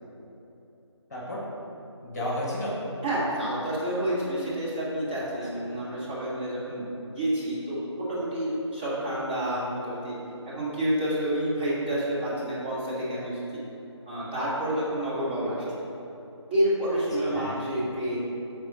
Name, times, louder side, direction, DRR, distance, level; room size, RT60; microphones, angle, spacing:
voice 1, 1.1-1.4 2.0-2.7 5.1-5.2 5.5-5.7 16.9-17.7, left 1 dB, 35° left, -6 dB, 1.5 m, -34 dB
voice 2, 3.0-6.8 7.1-10.1 10.4-13.4 14.1-15.6 16.5-18.2, right 1 dB, 20° right, -11 dB, 1.4 m, -29 dB
6.9 x 4.2 x 4.0 m, 3.0 s
figure-of-eight pair, 165°, 15 cm